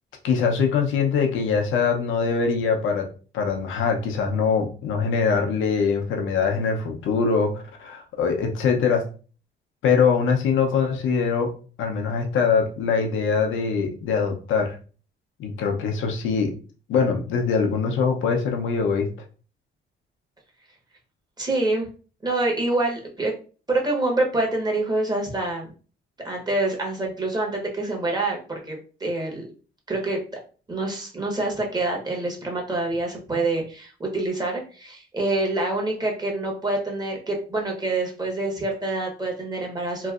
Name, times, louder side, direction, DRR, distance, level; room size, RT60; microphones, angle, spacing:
voice 1, 0.2-3.1 3.3-9.0 9.8-11.5 11.8-14.7 15.4-16.5 16.9-19.1, left 5 dB, 85° left, 3 dB, 0.7 m, -23 dB
voice 2, 21.4-21.9 22.2-23.3 23.7-25.7 26.2-29.4 29.9-30.2 30.7-40.1, right 2 dB, 20° right, 0 dB, 1.1 m, -26 dB
3.0 x 2.6 x 2.4 m, 0.38 s
cardioid pair, 90°, 20 cm